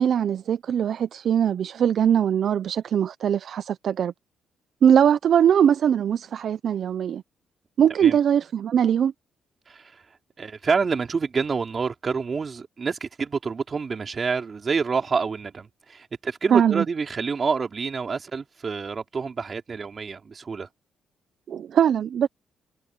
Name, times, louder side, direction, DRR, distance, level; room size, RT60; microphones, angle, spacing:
voice 1, 0.0-4.1 4.8-7.2 7.8-9.1 16.5-16.8 21.5-22.3, right 9 dB, 60° right, 0.6 m, -21 dB
voice 2, 9.7-10.0 10.4-20.7, right 5 dB, 40° right, 3.1 m, -27 dB
cardioid pair, 90°, 0 cm